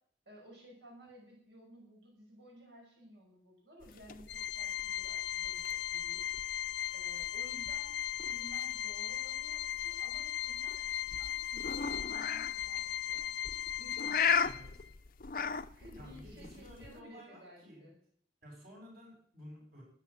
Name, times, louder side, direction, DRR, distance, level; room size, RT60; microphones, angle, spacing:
voice 1, 0.3-6.3 6.9-7.9 8.3-13.3 13.8-14.5 15.7-18.0, equal, 80° right, -2 dB, 5.7 m, -56 dB
sound 1, 3.8-17.0, left 6 dB, 50° left, 0.6 m, -38 dB
Organ, 4.3-14.9, left 11 dB, 80° left, 0.8 m, -37 dB
voice 2, 14.4-14.8 16.0-17.9 18.4-19.8, equal, 55° right, -1 dB, 6.7 m, -53 dB
13.0 x 9.7 x 8.7 m, 0.62 s
head